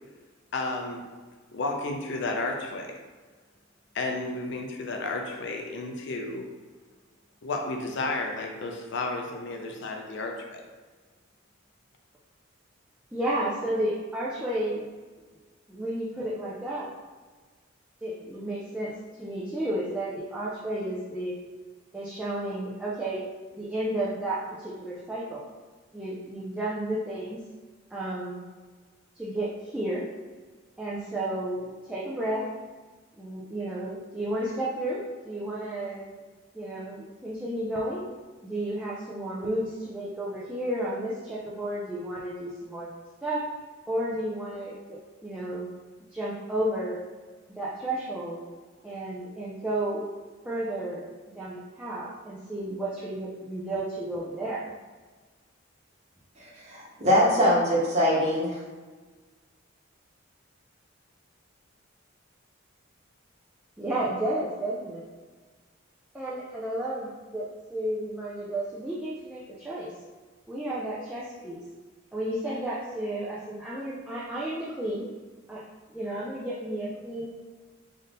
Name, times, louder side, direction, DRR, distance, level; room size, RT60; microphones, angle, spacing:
voice 1, 0.5-1.0 1.5-3.0 3.9-6.5 7.4-10.6, left 2 dB, 60° left, 2 dB, 0.5 m, -32 dB
voice 2, 13.1-14.8 15.7-16.9 18.0-18.9 19.2-21.3 21.9-23.2 23.5-25.5 25.9-27.4 27.9-28.4 29.2-30.1 30.8-32.4 33.2-36.1 36.5-38.1 38.4-42.9 43.2-43.4 43.9-45.7 46.1-47.0 47.6-48.4 48.8-50.1 50.4-51.1 51.4-54.7 63.8-65.0 66.1-69.9 70.5-71.6 72.1-75.1 75.5-75.6 75.9-77.3, right 1 dB, 5° right, -7 dB, 0.4 m, -32 dB
voice 3, 56.4-58.6, equal, 35° right, -6 dB, 1.1 m, -23 dB
3.5 x 2.7 x 3.8 m, 1.4 s
head